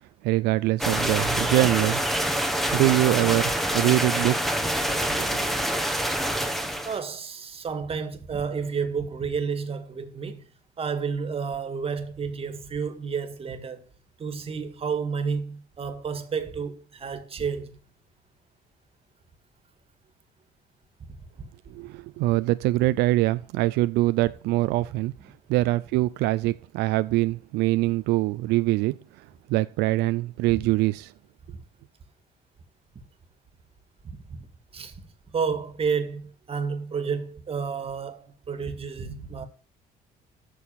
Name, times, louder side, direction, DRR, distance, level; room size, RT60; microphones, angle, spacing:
voice 1, 0.2-2.0 2.7-4.6 5.0-5.5 21.7-25.1 25.5-31.1, right 18 dB, 90° right, 0.4 m, -24 dB
sound 1, 0.8-7.0, equal, ahead, 1.2 m, -26 dB
voice 2, 6.8-10.5 10.8-13.8 14.2-17.8 30.5-30.6 34.0-34.5 34.7-34.9 35.3-39.4, right 6 dB, 35° right, 1.8 m, -31 dB
8.4 x 6.4 x 7.5 m
cardioid pair, 110°, 17 cm